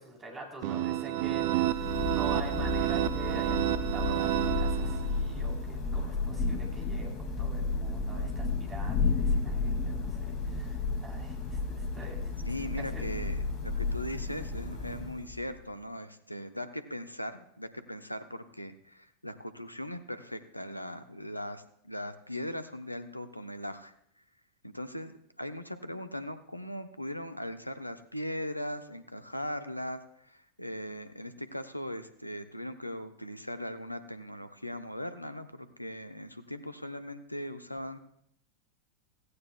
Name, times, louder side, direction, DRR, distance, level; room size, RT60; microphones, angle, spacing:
voice 1, 0.0-7.1 7.4-12.5 12.9-13.1, right 2 dB, 20° right, 0 dB, 3.7 m, -45 dB
sound 1, 0.6-5.4, right 13 dB, 45° right, 0.5 m, -30 dB
Thunder / Rain, 1.3-15.6, left 3 dB, 35° left, 2.2 m, -32 dB
voice 2, 12.5-23.9 24.6-38.0, left 1 dB, 90° left, 10 dB, 0.8 m, -39 dB
16.5 x 15.5 x 2.3 m, 0.71 s
figure-of-eight pair, 90°, 0 cm